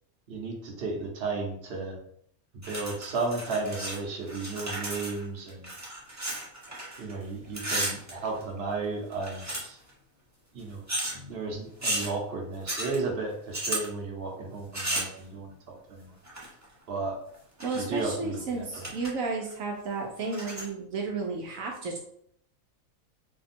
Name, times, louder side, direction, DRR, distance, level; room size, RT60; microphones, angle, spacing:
voice 1, 0.3-2.0 2.7-5.7 7.0-9.8 10.5-10.8 11.1-16.2 16.9-17.2 17.7-18.9, right 3 dB, 50° right, 0 dB, 1.0 m, -34 dB
sound 1, 2.6-4.0 4.2-7.2 7.4-8.7 9.1-9.9 10.9-11.2 11.8-12.1 12.7-13.0 13.5-13.9 14.7-15.2 16.2-16.6 17.3-18.0 18.3-18.4 18.7-19.1 19.5-19.6 20.2-20.7, right 1 dB, 15° right, 0.7 m, -34 dB
voice 2, 17.6-22.0, right 3 dB, 75° right, 0 dB, 1.0 m, -33 dB
3.5 x 2.3 x 4.2 m, 0.68 s
omnidirectional pair, 1.5 m